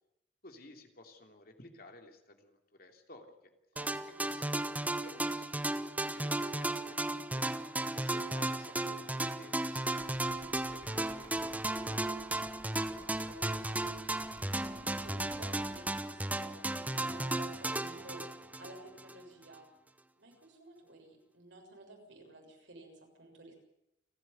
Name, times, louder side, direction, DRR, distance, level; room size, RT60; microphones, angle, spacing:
voice 1, 0.4-3.5 4.2-7.6 7.9-12.2, left 2 dB, 55° left, 4 dB, 3.1 m, -55 dB
voice 2, 3.7-4.3 12.6-13.8 14.5-18.2 18.6-19.7 20.2-23.5, right 2 dB, 85° right, 1 dB, 7.0 m, -53 dB
sound 1, 3.8-19.2, right 1 dB, 10° right, 0.8 m, -35 dB
sound 2, 10.0-15.9, left 1 dB, 25° left, 3.6 m, -56 dB
29.5 x 10.0 x 9.5 m, 0.86 s
head